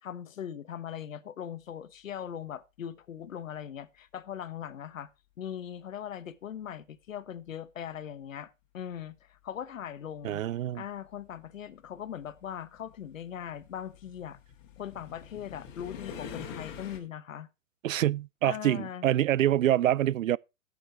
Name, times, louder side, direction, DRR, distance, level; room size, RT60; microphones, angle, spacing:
voice 1, 0.0-5.1 5.4-10.4 10.7-14.4 14.8-17.5 18.4-19.0, left 9 dB, 75° left, 1.2 m, -40 dB
sound 1, 9.8-9.9 10.9-17.0, left 7 dB, 35° left, 2.5 m, -45 dB
voice 2, 10.2-10.8 17.8-20.4, right 12 dB, 75° right, 0.5 m, -26 dB
14.5 x 6.6 x 4.6 m
hypercardioid pair, 150°, 40 cm